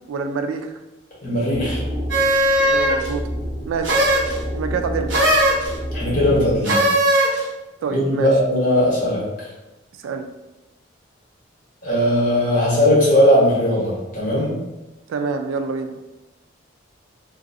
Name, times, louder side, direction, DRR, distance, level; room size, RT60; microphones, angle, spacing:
voice 1, 0.1-0.8 2.6-3.3 3.6-4.0 4.5-5.2 7.8-8.3 10.0-10.3 15.1-15.9, right 5 dB, 85° right, 6 dB, 0.3 m, -26 dB
voice 2, 1.2-1.8 5.9-6.8 7.9-9.5 11.8-14.6, left 1 dB, 45° left, -7 dB, 1.2 m, -18 dB
sound 1, 1.5-6.6, equal, 10° right, 0.7 m, -29 dB
sound 2, 2.1-3.1 3.8-4.3 5.1-5.7 6.6-7.4, right 1 dB, 65° right, 0.8 m, -17 dB
3.0 x 2.6 x 2.6 m, 1.0 s
head